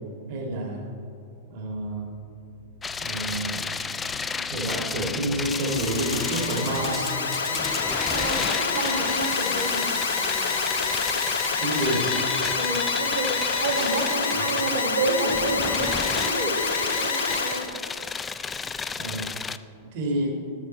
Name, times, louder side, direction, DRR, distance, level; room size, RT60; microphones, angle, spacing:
voice 1, 0.3-0.9 1.5-2.1 3.0-3.6 4.5-7.1 11.4-12.2 14.3-14.4 19.0-19.3 19.9-20.3, right 1 dB, 50° right, 0 dB, 1.9 m, -29 dB
sound 1, 1.9-12.7, left 4 dB, 45° left, 1.5 m, -39 dB
sound 2, 2.8-19.6, left 5 dB, 15° left, 0.3 m, -32 dB
Alarm, 5.3-17.7, left 4 dB, 80° left, 0.9 m, -27 dB
voice 2, 8.1-9.9 12.5-17.7, right 2 dB, 85° right, -3 dB, 2.0 m, -29 dB
12.5 x 7.4 x 4.4 m, 2.7 s
figure-of-eight pair, 100°, 0 cm